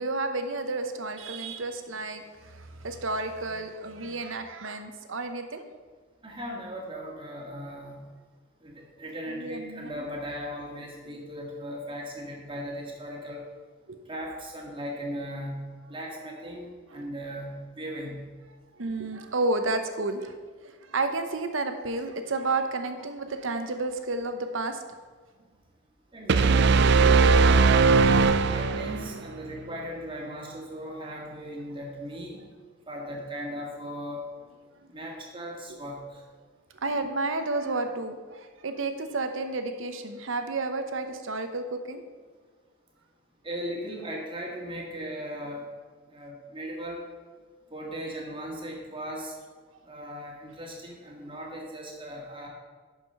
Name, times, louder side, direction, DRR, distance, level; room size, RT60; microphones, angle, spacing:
voice 1, 0.0-5.6 9.3-10.1 13.9-14.0 16.9-17.0 18.8-20.3 20.6-24.8 36.8-42.0, right 3 dB, 70° right, 8 dB, 0.9 m, -31 dB
voice 2, 6.2-8.0 8.6-13.5 14.1-18.3 26.1-27.7 28.5-32.4 32.9-34.3 34.9-36.0 43.4-45.7 46.1-47.0 47.7-49.3 49.9-52.5, equal, 25° right, -1 dB, 1.7 m, -38 dB
sound 1, 26.3-29.2, right 4 dB, 55° right, 0.4 m, -19 dB
11.0 x 5.1 x 5.5 m, 1.5 s
head